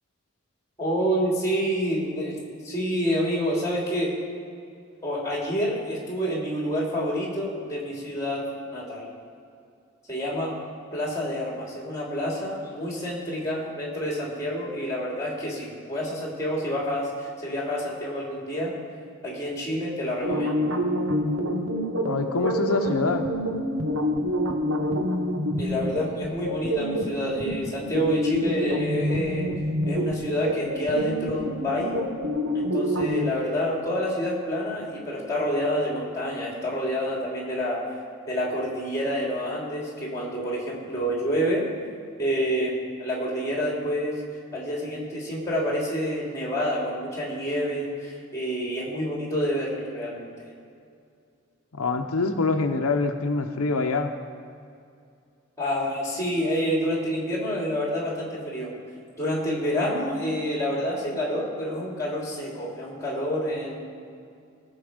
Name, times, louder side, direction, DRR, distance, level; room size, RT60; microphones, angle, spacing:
voice 1, 0.8-2.4 2.6-4.1 5.0-9.1 10.1-10.6 10.9-18.7 19.2-20.7 25.6-29.5 29.8-32.1 32.5-37.9 38.3-41.6 42.2-44.2 44.5-50.3 55.6-58.8 59.2-63.8, equal, 15° left, -3 dB, 3.0 m, -28 dB
sound 1, 20.2-33.3, equal, 70° right, 1.3 m, -27 dB
voice 2, 22.0-23.3 51.7-54.1, left 3 dB, 90° left, 4 dB, 0.8 m, -25 dB
17.5 x 6.9 x 5.1 m, 2.4 s
head